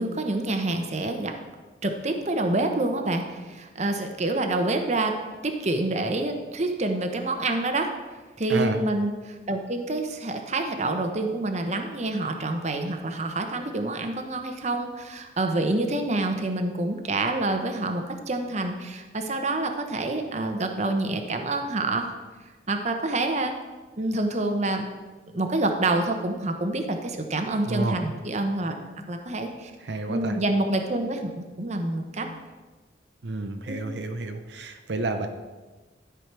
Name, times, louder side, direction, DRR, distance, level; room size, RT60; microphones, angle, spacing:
voice 1, 0.0-1.3 1.8-5.1 5.4-7.9 8.4-22.1 22.7-23.5 24.0-24.9 25.3-28.8 29.1-29.7 30.1-32.3 33.7-33.8, right 2 dB, 40° right, 5 dB, 1.0 m, -27 dB
voice 2, 27.6-28.0 29.8-30.4 33.2-35.3, right 2 dB, 80° right, 6 dB, 0.7 m, -30 dB
12.5 x 5.0 x 6.1 m, 1.3 s
head